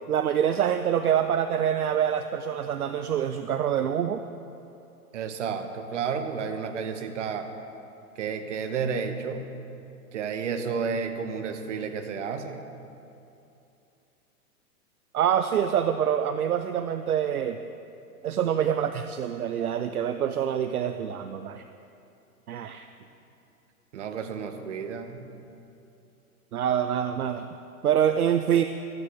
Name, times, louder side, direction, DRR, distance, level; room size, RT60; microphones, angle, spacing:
voice 1, 0.1-4.2 15.1-17.6 18.2-21.6 22.5-22.9 26.5-27.5 27.8-28.6, right 9 dB, 70° right, 9 dB, 0.6 m, -25 dB
voice 2, 5.1-7.5 8.2-9.5 10.1-12.6 23.9-25.3, right 6 dB, 50° right, 7 dB, 1.2 m, -31 dB
15.5 x 12.5 x 3.6 m, 2.8 s
figure-of-eight pair, 110°, 46 cm